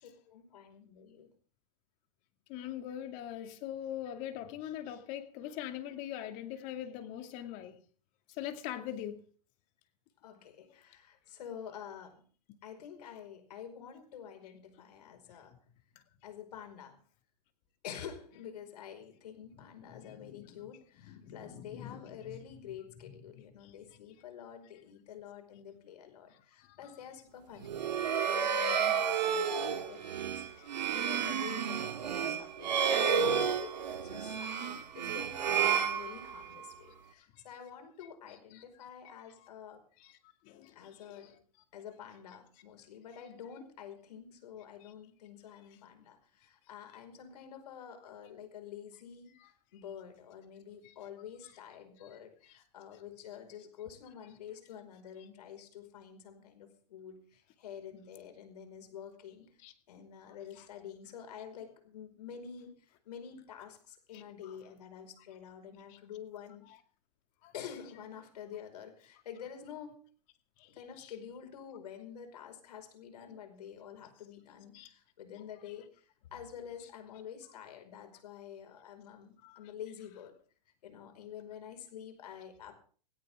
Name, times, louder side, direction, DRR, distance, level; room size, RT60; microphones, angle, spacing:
voice 1, 0.0-1.3 10.2-12.2 12.6-15.5 16.2-17.0 17.8-27.8 28.3-39.8 40.7-41.4 41.7-49.3 49.7-59.5 59.9-62.7 63.0-66.7 67.5-70.0 70.7-76.0 76.3-80.3 80.8-82.7, left 8 dB, 70° left, 5.1 m, -48 dB
voice 2, 2.5-7.8 8.4-9.2 19.8-20.6 21.1-22.4 29.7-29.8 30.6-30.7 34.7-34.8 40.0-40.1 40.5-40.8 41.0-41.3 59.6-59.7 64.1-64.2 67.4-67.5 70.6-70.7 71.0-71.1 74.7-74.9 79.4-79.6, left 11 dB, 35° left, 2.3 m, -42 dB
sound 1, 27.6-36.6, right 7 dB, 85° right, 1.9 m, -31 dB
17.5 x 17.0 x 3.7 m
hypercardioid pair, 145°, 21 cm